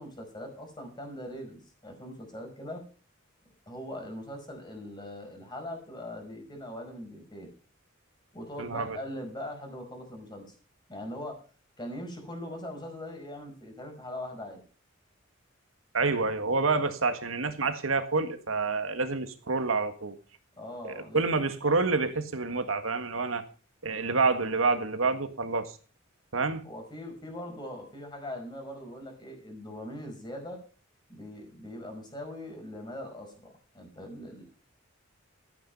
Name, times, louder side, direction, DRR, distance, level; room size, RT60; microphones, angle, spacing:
voice 1, 0.0-2.8 3.7-7.5 8.3-10.5 10.9-11.4 11.8-14.6 16.4-16.6 20.6-21.2 26.6-30.6 31.1-34.4, left 1 dB, 20° left, 5.2 m, -41 dB
voice 2, 8.6-9.0 15.9-20.2 20.8-23.4 23.8-25.7 26.3-26.7, right 3 dB, 85° right, 1.8 m, -28 dB
14.0 x 9.0 x 5.5 m
head